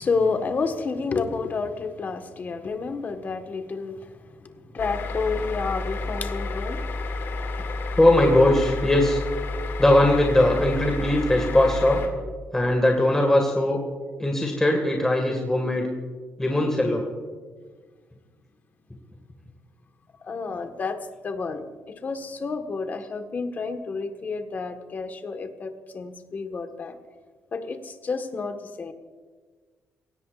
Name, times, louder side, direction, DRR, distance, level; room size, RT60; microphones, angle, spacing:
voice 1, 0.0-4.1 4.4-6.8 7.6-7.7 20.2-27.0 27.5-28.9, left 4 dB, 40° left, 6 dB, 1.6 m, -30 dB
sound 1, 4.8-12.1, left 3 dB, 60° left, 2.4 m, -30 dB
voice 2, 8.0-9.2 9.8-12.0 12.5-13.8 14.2-15.9 16.4-17.0, left 1 dB, 10° left, 1 dB, 2.0 m, -20 dB
29.0 x 17.0 x 2.5 m, 1.5 s
cardioid pair, 120°, 5 cm